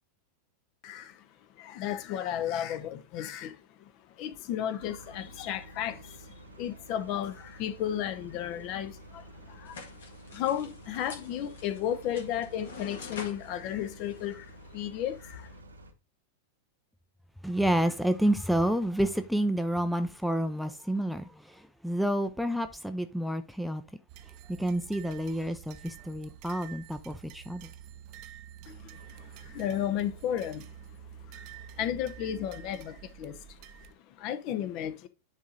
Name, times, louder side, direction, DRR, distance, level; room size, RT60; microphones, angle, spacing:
voice 1, 0.8-1.2 1.6-3.9 4.2-9.8 10.3-15.5 28.7-30.7 31.3-31.5 31.8-33.4 34.2-35.1, left 10 dB, 40° left, 0.8 m, -34 dB
sound 1, 4.8-15.9, right 1 dB, 75° right, 1.1 m, -50 dB
sound 2, 9.6-14.9, left 4 dB, 65° left, 1.7 m, -47 dB
voice 2, 17.4-23.8 24.5-27.7, right 1 dB, ahead, 0.6 m, -29 dB
sound 3, 24.1-33.9, right 10 dB, 40° right, 0.6 m, -49 dB
10.0 x 3.7 x 3.9 m
figure-of-eight pair, 90°, 0 cm